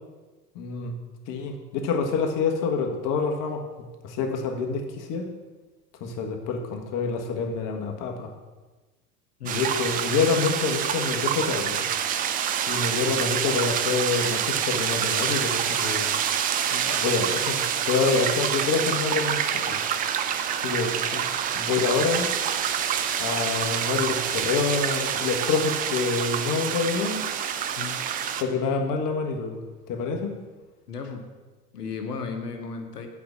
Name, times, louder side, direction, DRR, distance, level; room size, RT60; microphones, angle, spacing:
voice 1, 0.5-1.0 1.3-3.6 4.0-5.3 6.0-8.3 9.4-11.8 12.7-16.1 17.0-19.8 20.6-20.9 21.5-22.3 23.2-27.3 28.4-29.6 29.9-30.3, left 4 dB, 45° left, 3 dB, 1.5 m, -27 dB
sound 1, 9.5-28.4, right 9 dB, 20° right, 0.4 m, -27 dB
voice 2, 16.7-17.0 21.1-21.2 27.8-28.0 30.9-31.2 31.7-33.1, left 5 dB, 85° left, 5 dB, 1.2 m, -35 dB
8.5 x 4.8 x 6.9 m, 1.2 s
figure-of-eight pair, 80°, 46 cm